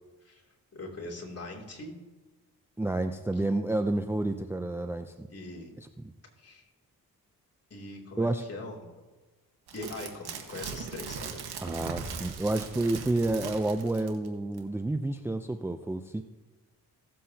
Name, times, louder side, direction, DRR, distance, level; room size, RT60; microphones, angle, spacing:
voice 1, 0.7-2.0 5.3-5.7 6.4-6.6 7.7-8.9 9.7-11.5, left 2 dB, 40° left, -2 dB, 2.9 m, -41 dB
voice 2, 2.8-5.3 5.8-5.9 8.2-8.4 11.6-16.2, right 2 dB, 5° right, 7 dB, 0.5 m, -30 dB
sound 1, 9.7-14.3 14.6-14.7, right 6 dB, 75° right, 1.5 m, -39 dB
16.5 x 7.7 x 2.8 m, 1.2 s
cardioid pair, 70°, 39 cm